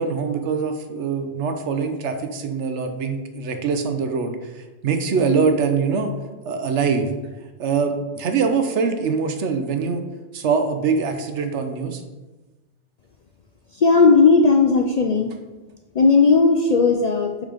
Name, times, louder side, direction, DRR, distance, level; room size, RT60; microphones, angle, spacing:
voice 1, 0.0-6.1 6.4-7.1 7.6-10.0 10.3-12.0, right 5 dB, 80° right, 7 dB, 1.1 m, -23 dB
voice 2, 13.7-15.3 15.9-17.5, left 4 dB, 55° left, 3 dB, 0.4 m, -16 dB
6.3 x 4.0 x 5.0 m, 1.1 s
omnidirectional pair, 1.2 m